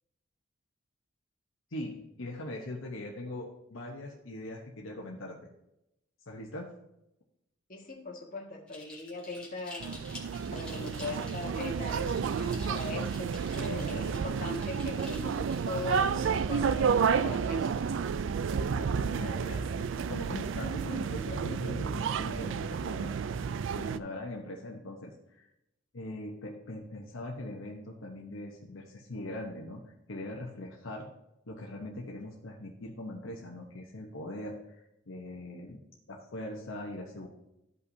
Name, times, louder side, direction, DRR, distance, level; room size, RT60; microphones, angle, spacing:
voice 1, 1.7-5.5 6.3-6.7 18.8-19.6 20.1-23.1 23.7-25.5 25.9-31.1 31.5-35.8 36.1-37.3, left 1 dB, 70° left, 0 dB, 1.0 m, -41 dB
voice 2, 7.7-10.0 10.5-17.7, left 2 dB, 40° left, -1 dB, 1.8 m, -40 dB
sound 1, 8.7-16.0, left 2 dB, 5° left, 1.9 m, -49 dB
sound 2, 9.8-24.0, right 6 dB, 65° right, 0.3 m, -31 dB
13.5 x 5.4 x 2.7 m, 0.87 s
head